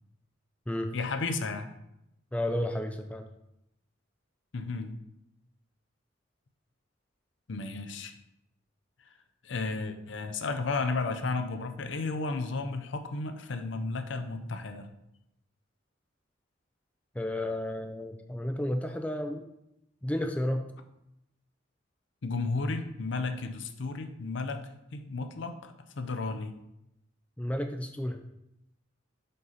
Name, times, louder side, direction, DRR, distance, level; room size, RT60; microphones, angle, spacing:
voice 1, 0.9-1.7 4.5-4.9 7.5-8.1 9.4-14.9 22.2-26.5, left 3 dB, 65° left, 8 dB, 0.6 m, -33 dB
voice 2, 2.3-3.3 17.2-19.5 20.0-20.7 27.4-28.2, left 1 dB, 5° left, 5 dB, 0.3 m, -32 dB
5.4 x 4.0 x 5.6 m, 0.84 s
head